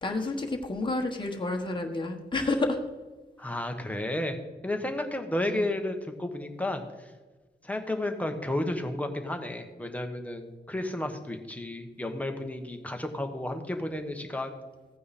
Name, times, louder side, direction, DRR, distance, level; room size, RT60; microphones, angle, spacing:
voice 1, 0.0-2.8 5.4-5.7, left 2 dB, 25° left, 2 dB, 1.3 m, -30 dB
voice 2, 3.4-4.4 4.6-7.1 7.6-14.6, left 1 dB, 10° left, 4 dB, 1.1 m, -32 dB
15.0 x 9.3 x 4.2 m, 1.2 s
wide cardioid pair, 160°, 18 cm